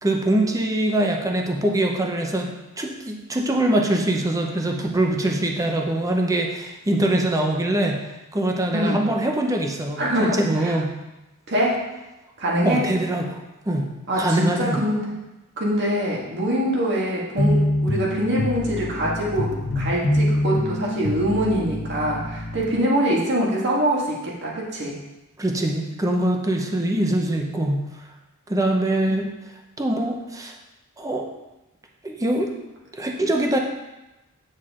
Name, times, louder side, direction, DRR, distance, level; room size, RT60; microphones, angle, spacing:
voice 1, 0.0-2.5 2.8-8.0 8.3-10.9 12.6-13.4 13.7-13.9 14.2-14.8 25.4-27.8 28.5-29.3 29.8-30.5 31.0-31.3 32.0-32.5 32.9-33.6, right 1 dB, 15° right, 2 dB, 0.8 m, -23 dB
voice 2, 8.7-9.0 10.0-10.8 11.5-11.9 12.4-12.9 14.1-15.1 15.6-25.0, equal, 50° right, -4 dB, 2.0 m, -24 dB
sound 1, 17.4-22.7, left 1 dB, 55° left, 1.1 m, -25 dB
9.2 x 6.5 x 3.8 m, 1.0 s
head